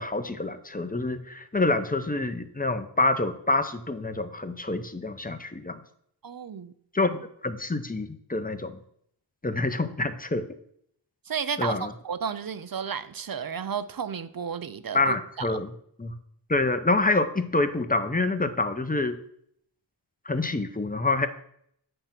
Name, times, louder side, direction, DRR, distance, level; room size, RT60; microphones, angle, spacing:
voice 1, 0.0-5.8 6.9-8.8 9.4-10.5 11.6-11.9 14.9-15.7 16.0-16.1 16.5-19.2 20.3-21.3, left 2 dB, 20° left, 8 dB, 0.6 m, -27 dB
voice 2, 6.2-6.7 11.3-15.5, right 7 dB, 50° right, 12 dB, 0.5 m, -33 dB
8.7 x 3.3 x 5.9 m, 0.68 s
wide cardioid pair, 50°, 46 cm